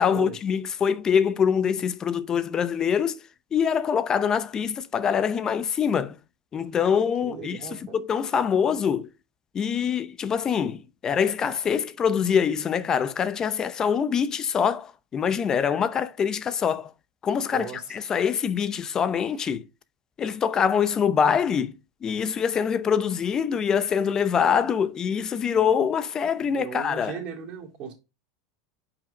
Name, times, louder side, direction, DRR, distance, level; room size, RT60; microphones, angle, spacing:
voice 1, 0.0-3.2 3.5-6.2 6.5-9.1 9.5-16.9 17.2-19.7 20.2-21.7 22.0-27.2, left 7 dB, 25° left, 0.7 m, -24 dB
voice 2, 7.2-7.9 17.5-17.8 26.5-27.9, right 7 dB, 40° right, 2.6 m, -36 dB
5.8 x 4.9 x 5.0 m
supercardioid pair, 115°, 2 cm